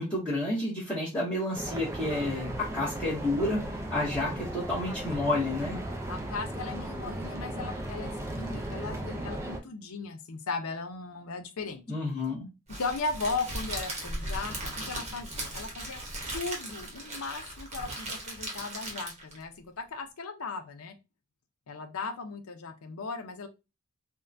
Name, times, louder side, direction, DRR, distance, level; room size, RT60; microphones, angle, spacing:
voice 1, 0.0-5.8 11.9-12.5, left 2 dB, 5° left, -10 dB, 0.8 m, -30 dB
sound 1, 1.5-9.6, right 1 dB, 15° right, 0.4 m, -36 dB
voice 2, 6.1-11.8 12.8-16.0 16.3-20.9 21.7-23.5, left 3 dB, 75° left, 7 dB, 0.6 m, -37 dB
Crackle, 12.7-19.4, right 1 dB, 30° right, 0.9 m, -37 dB
3.6 x 2.1 x 2.5 m, 0.26 s
head